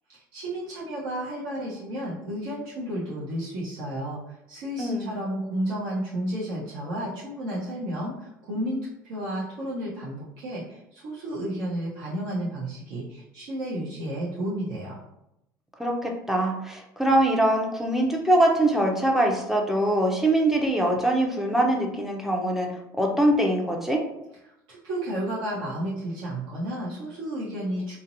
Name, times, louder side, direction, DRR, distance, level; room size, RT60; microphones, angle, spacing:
voice 1, 0.1-15.0 24.7-28.0, right 1 dB, 60° right, -8 dB, 0.7 m, -32 dB
voice 2, 4.8-5.1 15.8-22.7 23.0-24.0, right 1 dB, 5° right, 0 dB, 0.5 m, -23 dB
2.5 x 2.0 x 2.5 m, 0.85 s
hypercardioid pair, 65°, 11 cm